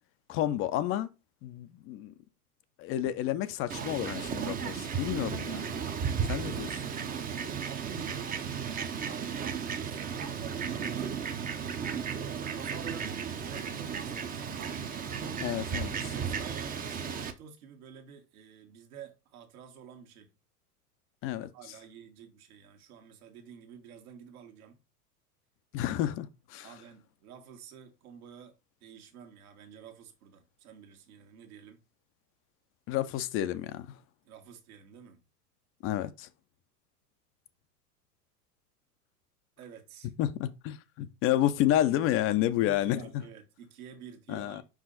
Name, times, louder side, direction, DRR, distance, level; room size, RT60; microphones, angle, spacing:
voice 1, 0.3-1.1 1.4-2.1 2.8-5.7 6.3-6.7 15.4-15.9 21.2-21.5 25.7-26.7 32.9-33.9 35.8-36.3 40.2-43.0 44.3-44.6, left 12 dB, 30° left, 0.5 m, -30 dB
Fowl, 3.7-17.3, right 7 dB, 20° right, 0.7 m, -34 dB
voice 2, 6.8-8.4 9.0-11.2 12.5-14.8 16.0-20.3 21.3-24.8 26.6-28.5 28.8-31.8 34.2-35.2 39.6-40.1 42.6-44.6, right 7 dB, 65° right, 1.6 m, -50 dB
5.5 x 4.9 x 3.8 m
hypercardioid pair, 95°, 46 cm